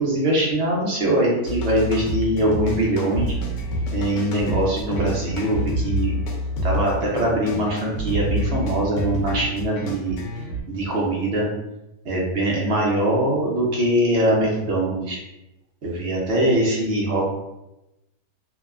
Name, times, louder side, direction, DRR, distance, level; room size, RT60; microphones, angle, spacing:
voice 1, 0.0-3.3 3.9-6.2 6.6-10.2 10.7-11.5 12.0-15.2 15.8-17.3, right 1 dB, 65° right, -3 dB, 0.6 m, -22 dB
sound 1, 1.4-10.6, equal, 85° left, 1.2 m, -27 dB
3.0 x 2.1 x 2.3 m, 0.91 s
omnidirectional pair, 1.8 m